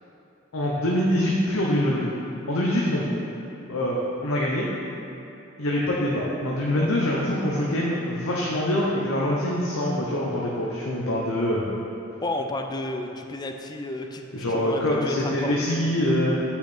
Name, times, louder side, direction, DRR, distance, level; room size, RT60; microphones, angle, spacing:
voice 1, 0.5-2.1 2.5-3.1 3.7-4.7 5.6-11.7 14.3-16.4, left 1 dB, 75° left, -4 dB, 0.9 m, -24 dB
voice 2, 12.2-15.9, left 2 dB, 20° left, 5 dB, 0.4 m, -32 dB
8.3 x 5.7 x 4.3 m, 2.8 s
head